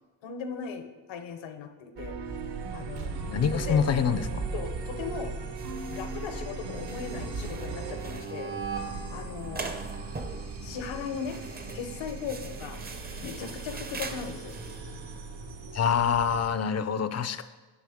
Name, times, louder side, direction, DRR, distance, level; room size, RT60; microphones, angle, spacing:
voice 1, 0.2-2.2 2.7-3.1 3.5-3.8 4.5-5.3 5.9-8.6 9.1-9.7 10.6-11.4 11.7-12.8 13.2-14.6, left 6 dB, 80° left, 7 dB, 0.9 m, -38 dB
sound 1, 2.0-8.2, right 4 dB, 65° right, 0.9 m, -37 dB
sound 2, 2.2-16.6, right 4 dB, 90° right, 1.4 m, -40 dB
voice 2, 3.3-4.5 15.7-17.4, left 7 dB, 40° left, 12 dB, 0.4 m, -26 dB
sound 3, 5.6-14.8, right 3 dB, 20° right, 0.5 m, -43 dB
9.3 x 6.4 x 3.5 m, 1.3 s
cardioid pair, 130°, 45 cm